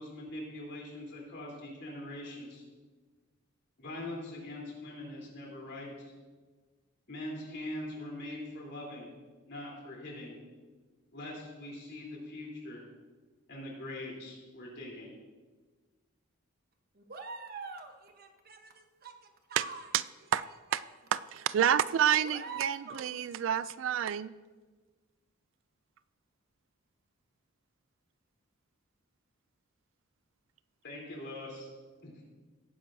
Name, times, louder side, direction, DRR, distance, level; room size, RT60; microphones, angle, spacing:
voice 1, 0.0-2.6 3.8-6.1 7.1-9.1 9.5-10.4 11.1-12.8 13.5-15.2 30.8-31.7 32.0-32.2, left 1 dB, 55° left, -3 dB, 3.5 m, -42 dB
voice 2, 16.9-19.9 20.3-20.4 20.8-20.9 22.2-23.1, right 4 dB, 50° right, 5 dB, 1.0 m, -45 dB
voice 3, 21.1-24.3, right 9 dB, 65° right, 16 dB, 0.3 m, -28 dB
17.5 x 10.0 x 2.7 m, 1.4 s
head